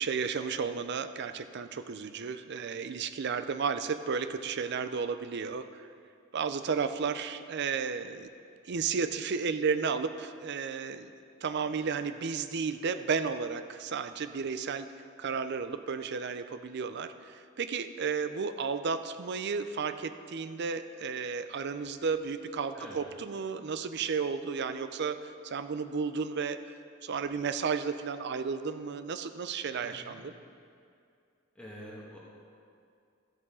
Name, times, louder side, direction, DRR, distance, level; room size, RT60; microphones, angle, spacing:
voice 1, 0.0-5.9 6.3-8.3 8.7-11.1 11.4-14.9 15.2-26.6 27.0-30.3, right 5 dB, 55° right, 11 dB, 0.5 m, -33 dB
voice 2, 29.8-30.2 31.5-32.2, equal, 5° left, -6 dB, 1.4 m, -46 dB
13.5 x 8.1 x 3.8 m, 2.4 s
head